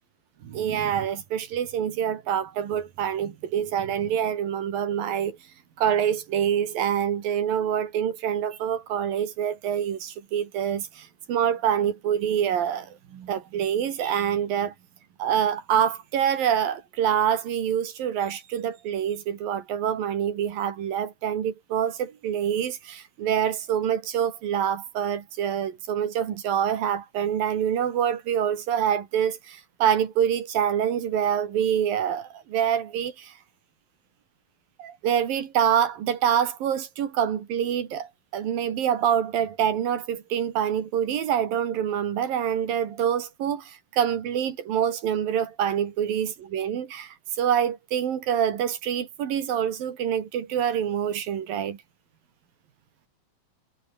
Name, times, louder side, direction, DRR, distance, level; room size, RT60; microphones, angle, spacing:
voice 1, 0.4-5.4 5.8-14.7 15.2-33.3 34.8-51.8, right 9 dB, 75° right, 4.0 m, -26 dB
omnidirectional pair, 4.1 m